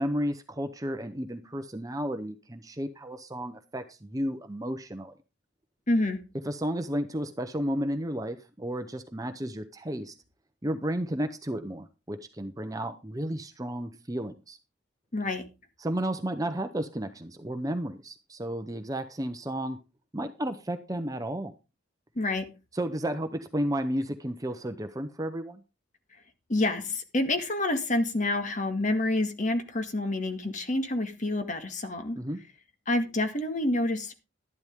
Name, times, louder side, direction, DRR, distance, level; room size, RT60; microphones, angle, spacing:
voice 1, 0.0-5.1 6.5-10.2 10.6-14.6 15.8-19.8 20.1-21.5 22.7-25.6 32.1-32.4, equal, 20° right, 0.8 m, -32 dB
voice 2, 5.9-6.2 15.1-15.4 22.2-22.4 26.5-32.2 32.9-34.1, left 2 dB, 40° left, 1.9 m, -28 dB
12.0 x 11.5 x 3.7 m
head